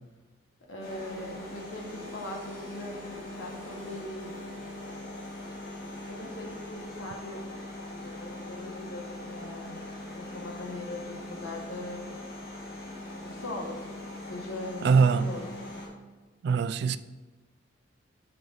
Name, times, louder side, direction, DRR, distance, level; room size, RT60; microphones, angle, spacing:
voice 1, 0.7-4.4 6.0-7.4 8.0-9.7 10.1-12.0 13.2-14.0 14.3-15.5, left 1 dB, 85° left, 1.6 m, -40 dB
sound 1, 0.8-15.9, left 1 dB, 50° left, 2.3 m, -41 dB
voice 2, 14.8-15.3 16.4-17.0, right 5 dB, 55° right, 0.3 m, -22 dB
7.7 x 5.0 x 3.8 m
head